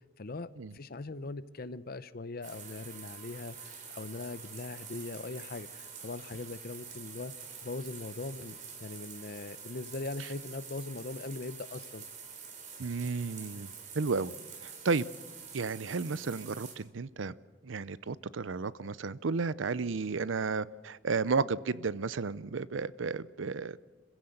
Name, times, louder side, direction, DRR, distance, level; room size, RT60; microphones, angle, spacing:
voice 1, 0.2-7.3 7.6-12.1, left 3 dB, 50° left, 15 dB, 0.7 m, -40 dB
sound 1, 2.4-16.7, right 6 dB, 40° right, 3.5 m, -47 dB
voice 2, 12.8-14.3 14.6-15.1 15.5-17.4 17.6-23.8, right 4 dB, 80° right, 18 dB, 0.6 m, -33 dB
26.5 x 15.5 x 7.9 m, 1.4 s
head